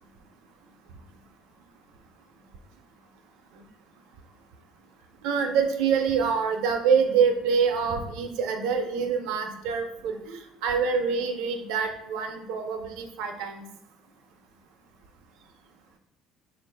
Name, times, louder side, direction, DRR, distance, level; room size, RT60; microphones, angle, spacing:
voice 1, 5.2-13.7, right 6 dB, 80° right, 5 dB, 0.5 m, -26 dB
3.8 x 2.5 x 3.3 m, 0.78 s
supercardioid pair, 95°, 0 cm